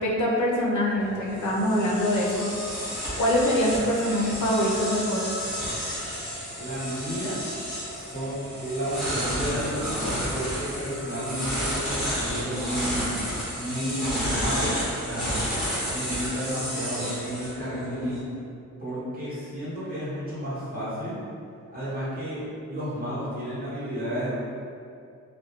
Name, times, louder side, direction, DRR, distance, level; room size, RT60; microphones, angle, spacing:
voice 1, 0.0-2.5 3.2-5.3, left 1 dB, 70° left, -3 dB, 0.5 m, -24 dB
sound 1, 1.0-18.2, equal, ahead, 0.8 m, -31 dB
voice 2, 6.5-7.4 7.9-13.2 13.5-15.3 15.9-18.1 18.8-21.1 21.7-24.4, equal, 30° right, -11 dB, 0.8 m, -32 dB
2.3 x 2.2 x 2.8 m, 2.4 s
wide cardioid pair, 175°, 31 cm